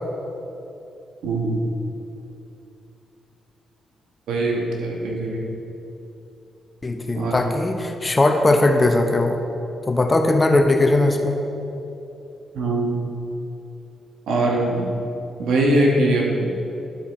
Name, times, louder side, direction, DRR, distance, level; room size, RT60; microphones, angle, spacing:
voice 1, 1.2-1.7 4.3-5.5 7.2-7.3 12.5-13.0 14.3-14.9 15.4-16.6, right 1 dB, 80° right, -1 dB, 1.2 m, -21 dB
voice 2, 6.8-9.4 9.9-11.4, left 2 dB, 25° left, 5 dB, 0.8 m, -19 dB
11.0 x 4.7 x 4.3 m, 2.9 s
supercardioid pair, 55°, 0 cm